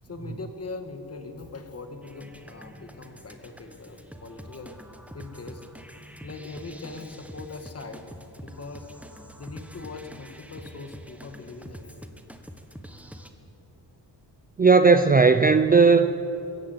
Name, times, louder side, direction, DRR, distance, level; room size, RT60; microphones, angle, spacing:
voice 1, 0.0-4.8 5.1-5.7 6.2-8.9 9.4-12.2, left 3 dB, 35° left, 6 dB, 1.9 m, -41 dB
sound 1, 2.0-13.3, equal, 5° right, 1.2 m, -45 dB
voice 2, 14.6-16.1, right 4 dB, 20° right, 10 dB, 0.5 m, -16 dB
21.5 x 16.0 x 8.0 m, 2.7 s
wide cardioid pair, 140°, 43 cm